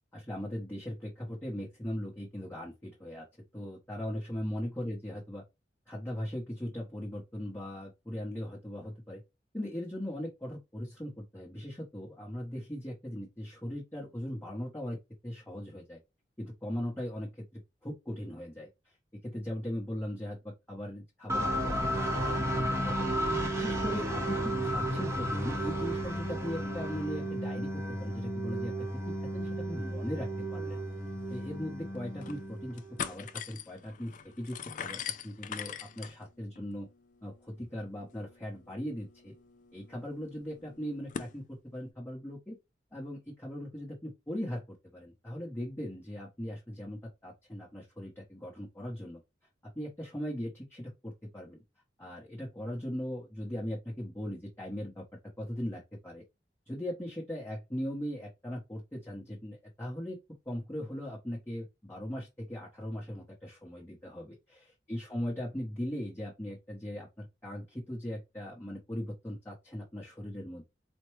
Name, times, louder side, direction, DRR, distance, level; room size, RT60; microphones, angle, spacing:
voice 1, 0.1-3.2 3.5-5.4 5.9-9.2 9.5-16.0 16.4-18.9 19.2-20.4 20.7-23.1 23.5-30.8 31.3-36.9 37.2-39.3 39.7-42.6 42.9-44.6 44.9-49.2 49.8-51.6 52.0-55.0 55.4-56.2 56.7-60.2 60.5-70.6, equal, 15° left, 0.8 m, -39 dB
sound 1, 21.3-33.1, right 1 dB, 15° right, 0.9 m, -33 dB
sound 2, 31.0-31.1 31.3-31.4 31.9-32.4 32.7-41.3, left 8 dB, 45° left, 0.4 m, -43 dB
4.3 x 2.2 x 3.1 m
head